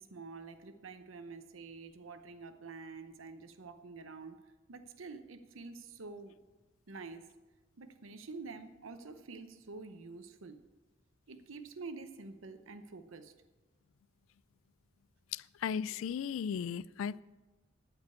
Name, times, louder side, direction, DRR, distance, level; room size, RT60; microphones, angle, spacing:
voice 1, 0.0-4.4 4.7-6.3 6.9-7.2 7.8-10.6 11.3-13.3, right 4 dB, 80° right, 9 dB, 0.8 m, -47 dB
voice 2, 15.3-17.2, left 7 dB, 80° left, 21 dB, 0.3 m, -36 dB
12.5 x 5.2 x 8.3 m, 1.2 s
head